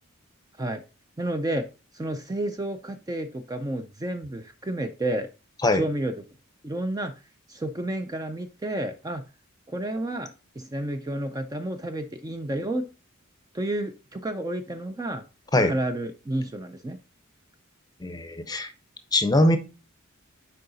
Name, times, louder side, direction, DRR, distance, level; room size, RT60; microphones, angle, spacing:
voice 1, 1.2-1.6 1.9-5.3 5.7-6.1 6.6-7.1 7.5-9.2 9.7-12.9 13.5-15.2 15.6-17.0, right 1 dB, 20° right, 8 dB, 0.4 m, -30 dB
voice 2, 18.0-18.7 19.1-19.6, left 1 dB, 20° left, 10 dB, 0.6 m, -21 dB
6.7 x 4.7 x 3.9 m, 0.31 s
head